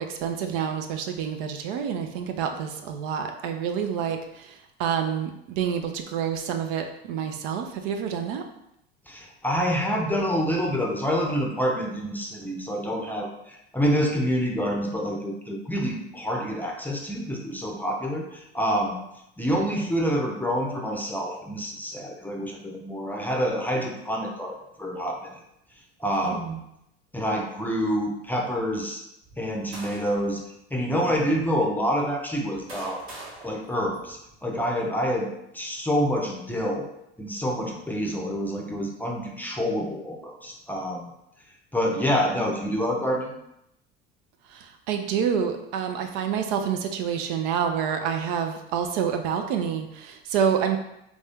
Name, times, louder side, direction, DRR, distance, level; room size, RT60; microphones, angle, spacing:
voice 1, 0.0-8.4 26.2-26.5 44.5-50.8, right 7 dB, 65° right, 5 dB, 0.6 m, -28 dB
voice 2, 9.1-19.0 19.4-25.4 26.0-26.6 27.1-29.0 29.4-30.4 30.7-33.0 33.4-36.9 37.2-41.1 41.7-43.4, equal, 5° left, 1 dB, 0.6 m, -27 dB
sound 1, 29.2-30.4 31.1-31.3 32.2-34.5, right 2 dB, 85° right, 1.3 m, -44 dB
3.4 x 2.6 x 3.4 m, 0.81 s
hypercardioid pair, 75°, 31 cm